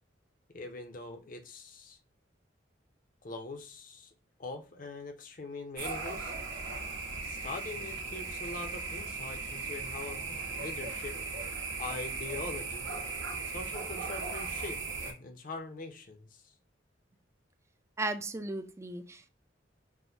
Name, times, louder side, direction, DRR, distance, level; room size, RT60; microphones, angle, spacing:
voice 1, 0.5-2.0 3.2-4.1 4.4-6.3 7.2-10.2 10.5-11.2 11.8-12.9 13.4-16.4, left 3 dB, 45° left, 6 dB, 0.7 m, -42 dB
sound 1, 5.8-15.1, right 4 dB, 85° right, 1.2 m, -37 dB
voice 2, 18.0-19.3, right 2 dB, 15° right, 8 dB, 0.4 m, -36 dB
6.0 x 2.1 x 2.6 m, 0.35 s
head